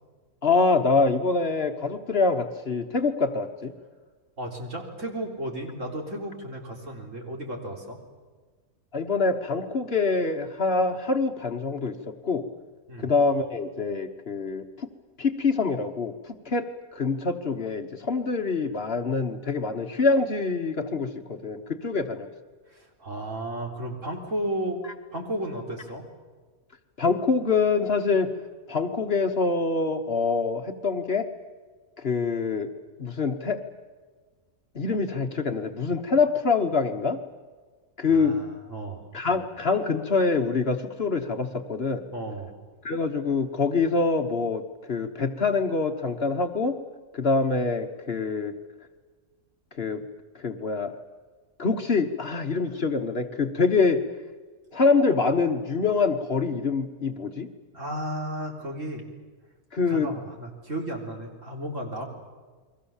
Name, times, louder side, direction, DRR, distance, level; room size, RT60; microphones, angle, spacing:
voice 1, 0.4-3.7 8.9-12.4 13.0-14.9 15.2-22.3 27.0-28.3 28.7-31.3 32.0-32.7 33.0-33.6 34.7-37.2 38.0-38.4 39.1-42.0 42.8-44.6 44.9-46.8 47.1-48.5 49.8-50.0 50.3-50.9 51.6-54.0 54.7-57.5 59.7-60.1, left 4 dB, 45° left, 6 dB, 1.4 m, -25 dB
voice 2, 4.4-8.0 12.9-13.1 22.7-24.8 25.1-26.0 38.1-39.1 42.1-42.6 57.7-59.0 59.9-62.1, right 1 dB, 55° right, 1 dB, 4.1 m, -34 dB
29.5 x 22.5 x 7.2 m, 1.4 s
omnidirectional pair, 1.6 m